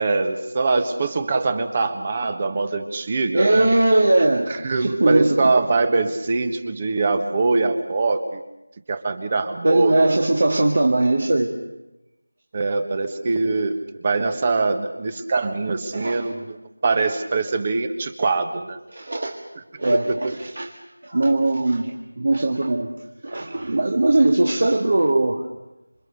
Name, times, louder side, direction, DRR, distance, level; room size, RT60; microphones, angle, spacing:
voice 1, 0.0-3.7 4.5-8.4 8.9-9.9 12.5-16.6 16.8-18.8 19.7-20.3, right 3 dB, 25° right, 10 dB, 1.4 m, -23 dB
voice 2, 3.3-4.5 4.8-5.5 9.6-11.6 15.9-16.3 18.9-19.4 19.8-20.7 21.0-22.9 23.2-25.4, right 2 dB, 50° right, 2 dB, 2.0 m, -20 dB
27.5 x 24.5 x 6.7 m, 0.96 s
figure-of-eight pair, 170°, 0 cm